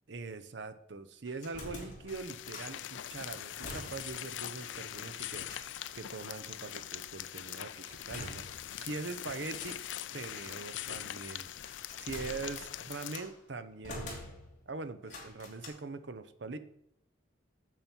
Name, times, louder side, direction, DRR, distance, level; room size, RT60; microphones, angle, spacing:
voice 1, 0.1-5.5 5.9-9.8 10.1-11.5 12.0-14.2 14.7-16.6, right 3 dB, 65° right, 11 dB, 0.7 m, -42 dB
sound 1, 1.3-2.8 3.2-4.3 4.6-4.7 5.4-6.0 7.9-9.0 9.5-10.1 11.2-13.4 13.8-14.7 15.0-15.7, left 1 dB, 40° left, 2.7 m, -47 dB
sound 2, 2.1-13.2, left 11 dB, 70° left, 0.4 m, -42 dB
9.0 x 7.5 x 4.5 m, 0.74 s
head